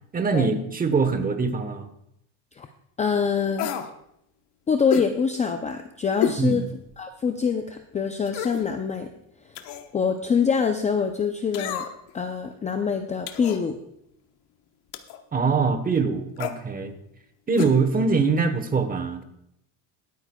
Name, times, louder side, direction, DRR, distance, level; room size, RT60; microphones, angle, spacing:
voice 1, 0.1-1.9 6.4-6.7 15.3-17.0 17.5-19.2, right 4 dB, 20° right, 9 dB, 1.0 m, -23 dB
voice 2, 3.0-3.7 4.7-6.6 7.0-9.1 9.9-11.9 12.1-13.8, left 6 dB, 15° left, 6 dB, 0.4 m, -25 dB
sound 1, 3.6-3.9 4.9-5.1 6.2-6.4 6.9-7.0 8.3-8.7 9.5-9.9 11.5-12.1 13.3-13.6 14.9-15.2 16.4-16.6 17.6-17.8 18.0-18.1, left 9 dB, 60° left, 1.1 m, -30 dB
21.5 x 9.2 x 2.3 m, 0.78 s
cardioid pair, 130°, 44 cm